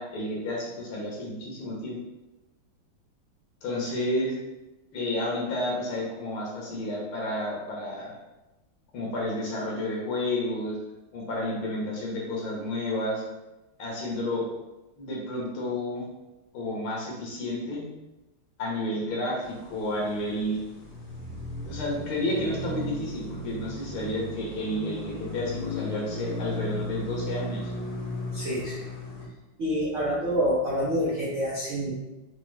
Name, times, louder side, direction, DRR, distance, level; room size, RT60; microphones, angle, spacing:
voice 1, 0.0-2.0 3.6-4.4 4.9-8.1 8.9-10.8 11.1-13.2 13.8-14.4 15.0-16.0 16.5-17.8 18.6-20.6 21.6-27.7, left 1 dB, 80° left, -3 dB, 2.0 m, -31 dB
sound 1, 19.4-29.3, left 1 dB, 25° left, 1.0 m, -36 dB
voice 2, 28.3-28.8 29.6-32.0, equal, 65° right, -7 dB, 0.7 m, -27 dB
5.8 x 2.0 x 3.2 m, 1.0 s
omnidirectional pair, 2.3 m